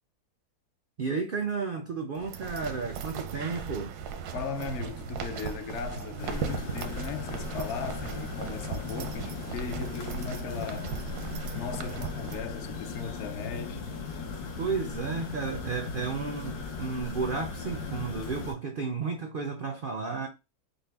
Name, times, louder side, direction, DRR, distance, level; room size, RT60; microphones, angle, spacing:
voice 1, 1.0-3.9 14.6-20.3, right 4 dB, 65° right, 0.5 m, -32 dB
sound 1, 2.2-12.4, right 7 dB, 85° right, 1.2 m, -38 dB
voice 2, 4.3-11.0 11.5-13.8, left 5 dB, 65° left, 0.8 m, -37 dB
sound 2, 6.2-18.5, left 4 dB, 80° left, 1.3 m, -38 dB
5.4 x 2.0 x 3.4 m
omnidirectional pair, 1.7 m